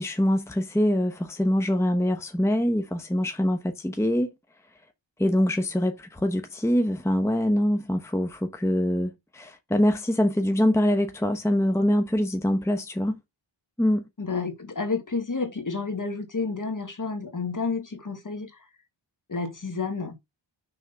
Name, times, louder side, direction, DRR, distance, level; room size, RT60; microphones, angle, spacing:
voice 1, 0.0-4.3 5.2-13.2 13.8-14.1, equal, 5° left, 0.9 m, -24 dB
voice 2, 14.2-18.7 19.3-20.1, left 4 dB, 40° left, 1.8 m, -30 dB
6.1 x 3.7 x 5.5 m
wide cardioid pair, 70°, 47 cm